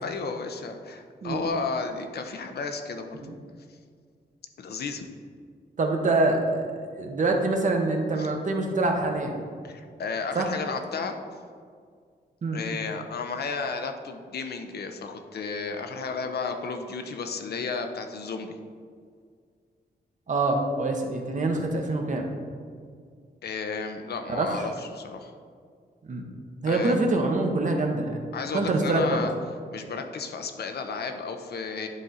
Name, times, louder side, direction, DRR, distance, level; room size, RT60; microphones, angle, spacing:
voice 1, 0.0-3.3 4.6-5.1 8.2-8.3 9.6-11.2 12.5-18.5 23.4-25.3 26.7-27.0 28.3-29.3 29.7-31.9, left 4 dB, 70° left, 6 dB, 0.6 m, -33 dB
voice 2, 5.8-6.6 6.9-9.5 10.3-10.5 12.4-12.6 20.3-22.3 24.3-24.5 26.1-26.3 26.6-28.3 28.5-29.2, right 2 dB, 45° right, 2 dB, 0.9 m, -25 dB
10.5 x 3.8 x 4.1 m, 2.1 s
wide cardioid pair, 135°, 17 cm